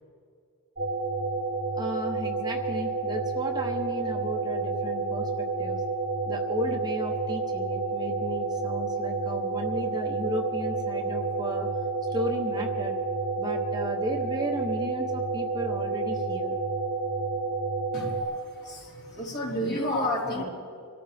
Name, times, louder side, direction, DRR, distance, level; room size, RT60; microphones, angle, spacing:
sound 1, 0.8-18.2, right 3 dB, 40° right, 3.8 m, -30 dB
voice 1, 1.7-5.8 6.3-11.7 12.1-13.0 13.4-16.6, equal, 20° right, 2 dB, 0.9 m, -34 dB
voice 2, 17.9-20.4, left 1 dB, 50° left, -5 dB, 4.3 m, -31 dB
25.5 x 13.5 x 3.5 m, 2.4 s
head